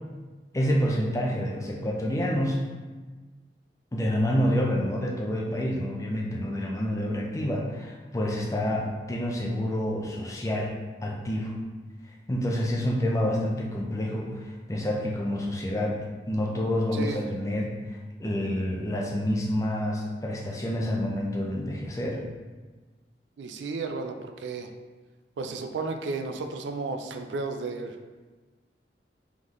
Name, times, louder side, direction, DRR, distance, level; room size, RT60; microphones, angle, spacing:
voice 1, 0.5-2.6 3.9-10.7 11.0-11.5 12.3-22.2, equal, 20° left, -1 dB, 0.5 m, -28 dB
voice 2, 23.4-24.7 25.4-28.0, right 3 dB, 90° right, 6 dB, 0.4 m, -33 dB
3.8 x 3.6 x 3.1 m, 1.3 s
head